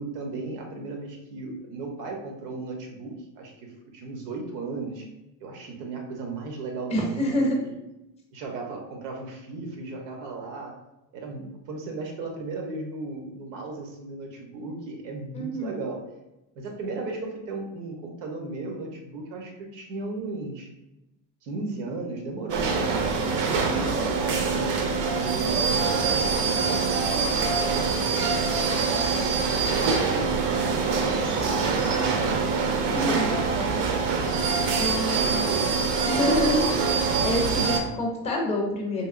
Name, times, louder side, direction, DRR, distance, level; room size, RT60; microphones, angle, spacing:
voice 1, 0.0-5.1 5.4-7.7 8.3-10.8 11.1-16.0 16.6-20.7 21.4-24.8 25.2-28.0 28.8-29.3 29.6-32.5 35.0-35.8, right 3 dB, 85° right, 2 dB, 1.0 m, -36 dB
voice 2, 6.9-7.6 15.3-15.8 23.7-24.0 32.9-33.4 34.7-35.5 36.0-39.1, left 1 dB, 15° left, -1 dB, 0.5 m, -27 dB
sound 1, 22.5-37.8, right 4 dB, 70° right, 0.7 m, -24 dB
3.4 x 2.7 x 2.4 m, 0.94 s
cardioid pair, 150°, 50 cm